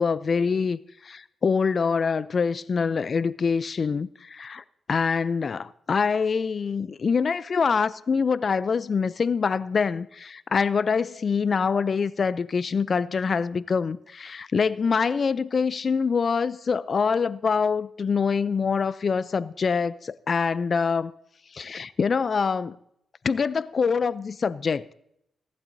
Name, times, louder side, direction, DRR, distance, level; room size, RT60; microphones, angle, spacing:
voice 1, 0.0-21.1 21.5-22.8 23.2-24.9, left 5 dB, 50° left, 0.4 m, -25 dB
18.5 x 11.5 x 2.7 m
cardioid pair, 75°, 0 cm